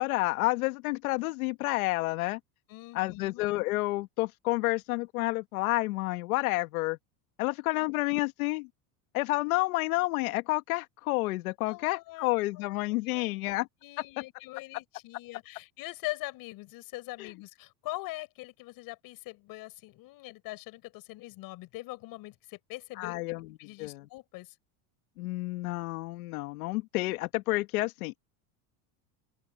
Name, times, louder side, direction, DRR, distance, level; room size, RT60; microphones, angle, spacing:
voice 1, 0.0-2.4 2.9-7.0 7.4-8.7 9.1-13.7 17.2-17.3 23.0-23.5 23.8-24.1 25.2-28.2, left 21 dB, 85° left, 1.6 m, -30 dB
voice 2, 2.7-3.4 11.7-12.8 13.1-13.5 13.8-23.2 23.6-24.6, left 20 dB, 55° left, 7.0 m, -42 dB
open air
supercardioid pair, 140°, 42 cm